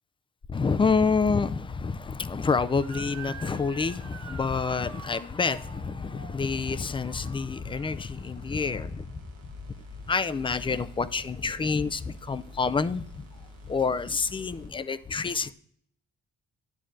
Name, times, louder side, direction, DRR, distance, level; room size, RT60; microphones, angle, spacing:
voice 1, 0.5-9.2 10.1-13.3 13.7-15.5, left 5 dB, 20° left, 0.3 m, -28 dB
Motor vehicle (road) / Siren, 2.8-8.1, right 10 dB, 60° right, 0.6 m, -47 dB
sound 1, 7.6-14.7, left 1 dB, 85° right, 1.2 m, -47 dB
10.0 x 7.0 x 2.6 m
cardioid pair, 90°, 30 cm